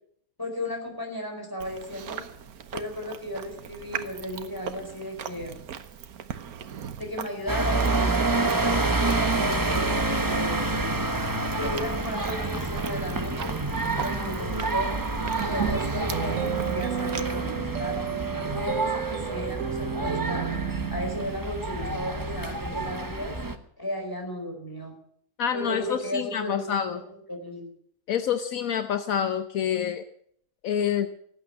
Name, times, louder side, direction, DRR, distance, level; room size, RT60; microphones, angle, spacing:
voice 1, 0.4-2.2 2.7-5.6 7.0-10.6 11.5-13.5 13.9-15.0 15.4-18.0 18.4-20.5 20.9-23.4 23.8-24.9 25.5-27.0 27.3-27.6, left 1 dB, 15° left, 2 dB, 4.6 m, -35 dB
Chewing mastication, 1.6-17.2, right 8 dB, 85° right, 1.5 m, -39 dB
sound 1, 7.5-23.6, right 2 dB, 15° right, 1.0 m, -28 dB
sound 2, 16.1-21.4, right 10 dB, 65° right, 1.2 m, -32 dB
voice 2, 25.4-27.0 28.1-30.0 30.6-31.1, left 8 dB, 70° left, 10 dB, 1.3 m, -27 dB
18.5 x 8.8 x 8.7 m, 0.65 s
omnidirectional pair, 1.5 m